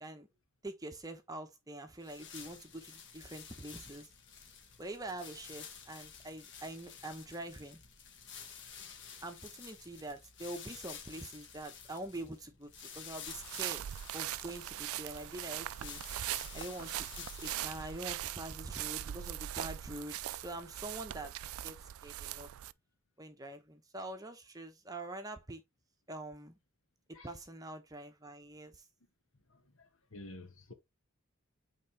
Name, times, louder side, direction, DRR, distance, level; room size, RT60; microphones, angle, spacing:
voice 1, 0.6-4.1 4.8-7.8 9.2-13.8 14.1-16.0 16.5-21.3 21.6-22.5 23.2-25.6 26.1-26.6 27.2-28.9, right 1 dB, 15° right, 0.9 m, -45 dB
sound 1, 2.0-18.5, left 7 dB, 55° left, 1.5 m, -51 dB
sound 2, 13.3-22.7, right 13 dB, 90° right, 0.4 m, -41 dB
voice 2, 29.5-30.7, left 2 dB, 70° left, 1.6 m, -51 dB
8.4 x 3.8 x 3.3 m
head